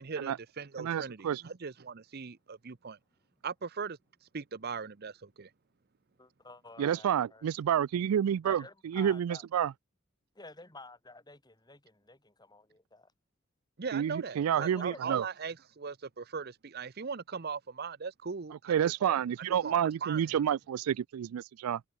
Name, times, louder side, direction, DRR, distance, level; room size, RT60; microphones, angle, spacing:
voice 1, 0.0-3.0 3.4-5.5 13.8-19.2 19.6-20.4, right 5 dB, 45° right, 0.7 m, -39 dB
voice 2, 0.8-1.4 6.8-9.7 13.9-15.3 18.7-21.8, right 9 dB, 85° right, 0.3 m, -29 dB
voice 3, 6.2-7.5 8.4-9.4 10.3-13.1 14.6-15.2, left 2 dB, 20° left, 3.1 m, -50 dB
head